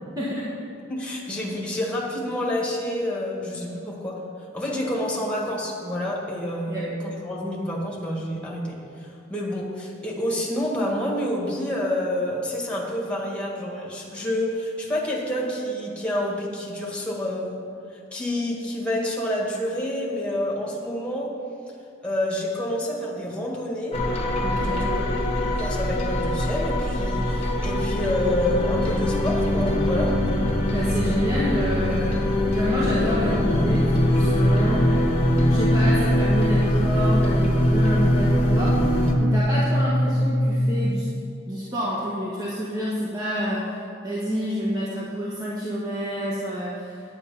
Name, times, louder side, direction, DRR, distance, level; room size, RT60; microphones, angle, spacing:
voice 1, 0.1-0.5 6.7-6.9 24.4-24.8 30.7-32.2 32.5-34.9 35.5-38.8 39.2-41.1 41.5-47.0, equal, 20° right, -7 dB, 1.4 m, -28 dB
voice 2, 0.9-4.2 4.5-17.6 18.1-21.3 22.0-24.0 24.6-30.2, left 1 dB, 5° left, -3 dB, 1.8 m, -28 dB
sound 1, 23.9-39.1, left 1 dB, 30° left, 1.2 m, -23 dB
sound 2, 33.5-41.1, equal, 65° left, 0.8 m, -22 dB
9.9 x 9.3 x 5.7 m, 2.4 s
head